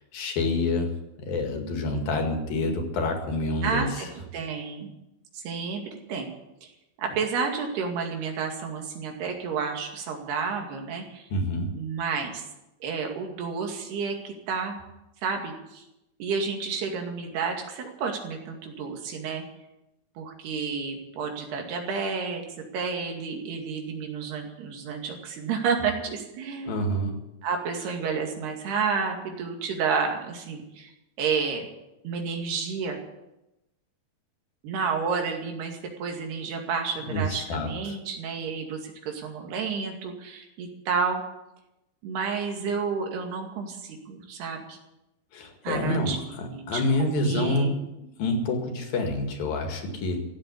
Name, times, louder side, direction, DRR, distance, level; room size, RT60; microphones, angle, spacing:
voice 1, 0.1-0.9 1.2-4.1 11.3-11.7 26.7-27.2 37.1-38.0 45.3-50.2, left 2 dB, 65° left, 4 dB, 3.8 m, -27 dB
voice 2, 3.6-4.9 5.3-5.8 6.1-6.3 6.6-6.7 7.0-11.3 11.7-12.4 12.8-14.8 15.2-15.8 16.2-19.4 20.2-22.4 22.7-26.8 27.4-30.9 31.2-31.6 32.0-33.0 34.6-41.2 42.0-44.8 45.6-47.7, right 5 dB, 80° right, 2 dB, 4.3 m, -30 dB
16.0 x 8.3 x 9.8 m, 0.91 s
omnidirectional pair, 4.5 m